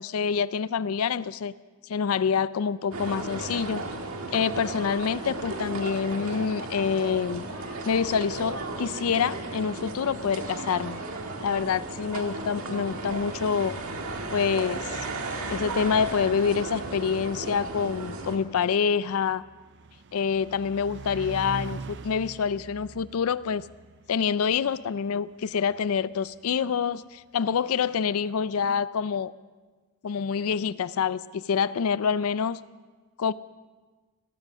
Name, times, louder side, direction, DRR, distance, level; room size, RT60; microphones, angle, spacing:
voice 1, 0.0-1.5 1.8-3.8 4.3-7.4 7.8-11.0 11.4-13.8 14.3-15.0 15.5-19.4 20.1-23.6 24.1-29.3 30.0-32.6 33.2-33.3, left 6 dB, 80° left, 17 dB, 0.4 m, -26 dB
sound 1, 2.9-18.4, right 2 dB, 75° right, 1.8 m, -35 dB
sound 2, 15.9-26.9, right 4 dB, 55° right, 0.6 m, -44 dB
18.0 x 13.0 x 6.1 m, 1.3 s
head